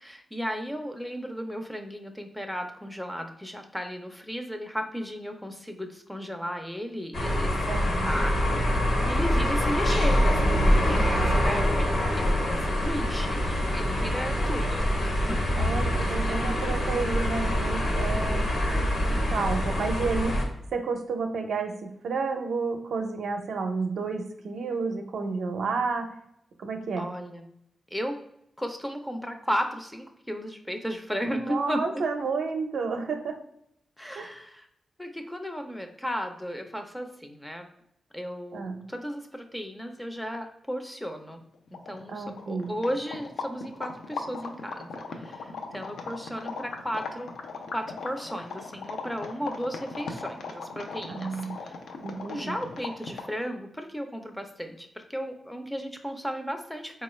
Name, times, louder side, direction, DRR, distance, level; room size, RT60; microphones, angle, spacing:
voice 1, 0.0-8.5 9.0-16.7 27.0-27.4 27.9-28.2 28.6-31.8 34.0-34.7 35.0-37.7 38.1-41.4 41.9-47.3 47.7-51.7 52.3-57.0, equal, 5° left, 5 dB, 0.4 m, -35 dB
sound 1, 7.1-20.4, equal, 60° left, 0.9 m, -25 dB
voice 2, 7.7-8.1 15.6-18.5 19.3-20.4 20.7-26.1 26.6-27.1 31.3-33.4 34.2-34.3 38.5-38.8 42.1-42.7 51.1-51.6 52.0-52.5, right 4 dB, 80° right, 4 dB, 0.5 m, -31 dB
sound 2, 41.4-41.5 41.7-53.4, left 4 dB, 90° left, 0.4 m, -38 dB
4.2 x 2.3 x 3.0 m, 0.76 s
wide cardioid pair, 105°, 0 cm